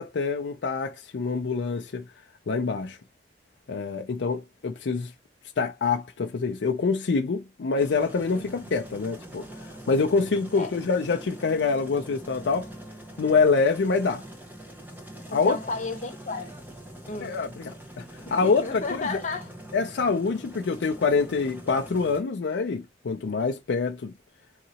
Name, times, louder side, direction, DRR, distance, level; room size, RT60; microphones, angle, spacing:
voice 1, 0.0-2.0 2.5-3.0 3.7-5.1 5.6-12.7 13.2-14.2 15.3-15.6 17.2-18.0 18.3-19.1 19.7-24.1, left 4 dB, 75° left, 0.4 m, -26 dB
sound 1, 7.8-22.2, right 1 dB, 10° right, 0.9 m, -44 dB
voice 2, 8.3-8.7 10.5-10.7 15.3-16.5 17.1-17.3 18.2-19.5, left 3 dB, 45° left, 0.9 m, -33 dB
3.9 x 2.8 x 4.0 m
head